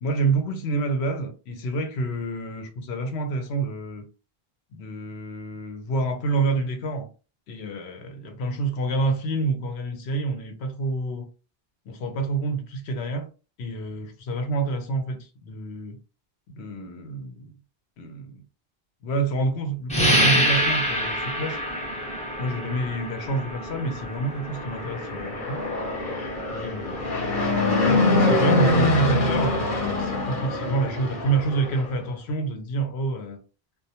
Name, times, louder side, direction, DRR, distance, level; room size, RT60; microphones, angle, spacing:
voice 1, 0.0-4.1 4.7-7.1 7.5-11.3 11.9-13.3 13.6-16.0 16.5-17.5 18.0-18.4 19.0-21.6 22.4-25.6 26.5-27.0 27.7-33.4, right 3 dB, 90° left, 0.9 m, -28 dB
sound 1, 19.9-30.2, equal, 10° left, 0.5 m, -28 dB
Fixed-wing aircraft airplane, 24.5-31.9, left 2 dB, 55° left, 0.8 m, -24 dB
2.2 x 2.1 x 2.7 m
omnidirectional pair, 1.1 m